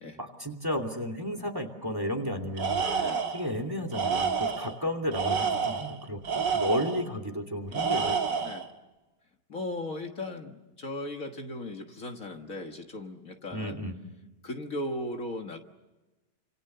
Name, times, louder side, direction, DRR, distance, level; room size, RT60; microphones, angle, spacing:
voice 1, 0.0-8.2 13.5-14.0, equal, 10° right, 6 dB, 2.7 m, -33 dB
Tools, 2.6-3.5 3.9-4.7 5.1-7.0 7.7-8.7, right 6 dB, 90° right, 2.6 m, -29 dB
voice 2, 7.7-8.0 8.4-8.7 9.5-13.8 14.4-15.6, left 1 dB, 50° left, 4 dB, 1.9 m, -37 dB
28.5 x 27.0 x 6.8 m, 1.1 s
omnidirectional pair, 1.8 m